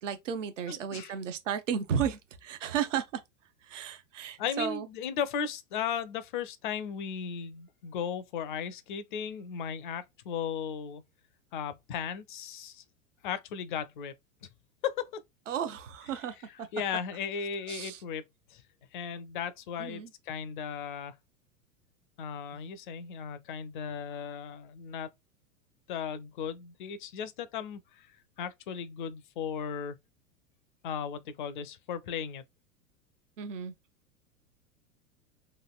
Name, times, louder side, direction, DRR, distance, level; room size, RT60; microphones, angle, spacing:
voice 1, 0.0-3.2 3.6-4.9 15.5-16.7 17.7-18.0 19.8-20.1 33.4-33.7, right 8 dB, 60° right, 0.7 m, -34 dB
voice 2, 0.7-1.1 4.4-11.0 11.5-12.8 13.2-14.1 14.4-14.5 14.8-15.2 16.7-18.2 18.5-18.6 18.9-21.2 22.2-25.1 25.9-28.1 28.4-30.0 30.8-32.4, left 7 dB, 35° left, 0.4 m, -36 dB
3.0 x 2.5 x 2.3 m
figure-of-eight pair, 95°, 43 cm